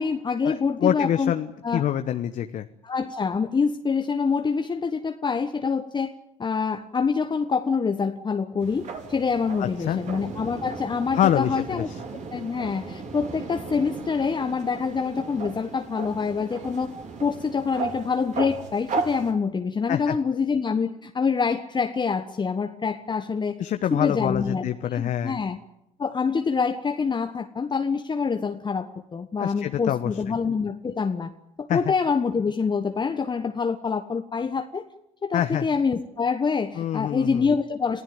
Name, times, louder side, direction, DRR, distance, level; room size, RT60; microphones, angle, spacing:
voice 1, 0.0-1.3 1.6-1.9 2.8-6.1 6.4-16.9 17.2-23.6 23.9-25.6 26.0-31.3 31.6-34.9 35.2-38.0, left 5 dB, 25° left, 6 dB, 1.3 m, -26 dB
voice 2, 0.8-2.7 9.6-10.0 11.1-11.8 19.9-20.1 23.6-25.4 29.4-30.1 31.7-31.8 35.3-35.6 36.8-37.5, left 10 dB, 50° left, 9 dB, 1.1 m, -25 dB
sound 1, 8.6-19.3, right 4 dB, 45° right, 4.2 m, -36 dB
27.5 x 15.5 x 9.4 m, 0.89 s
hypercardioid pair, 60°, 17 cm